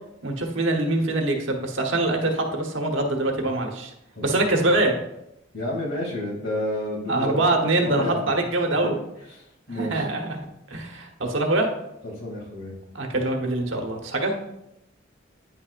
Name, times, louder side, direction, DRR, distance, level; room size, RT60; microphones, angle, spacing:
voice 1, 0.2-3.9 4.2-5.0 7.1-9.0 9.8-11.7 12.9-14.3, right 2 dB, 80° right, 2 dB, 1.2 m, -24 dB
voice 2, 4.1-4.5 5.5-8.3 9.3-10.1 12.0-12.7, left 1 dB, 85° left, -3 dB, 2.6 m, -31 dB
9.3 x 5.9 x 2.5 m, 0.85 s
head